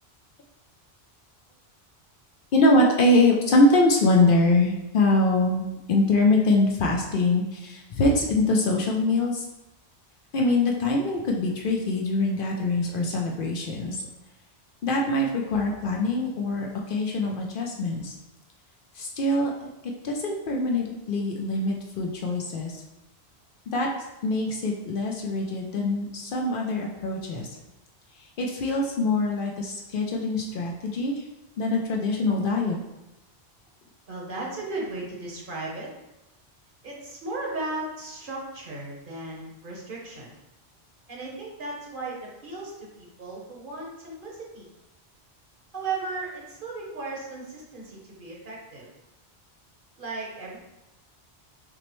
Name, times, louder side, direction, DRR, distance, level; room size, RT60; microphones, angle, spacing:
voice 1, 2.5-9.5 10.3-14.0 14.8-18.2 18.9-19.7 20.0-22.8 23.7-23.9 24.2-27.5 28.2-31.2 31.6-32.8, left 2 dB, 60° left, 0 dB, 0.6 m, -23 dB
voice 2, 34.1-35.9 36.8-40.3 41.1-44.7 45.7-48.9 50.0-50.6, right 3 dB, 55° right, -3 dB, 1.0 m, -36 dB
5.9 x 2.0 x 3.0 m, 0.97 s
omnidirectional pair, 1.1 m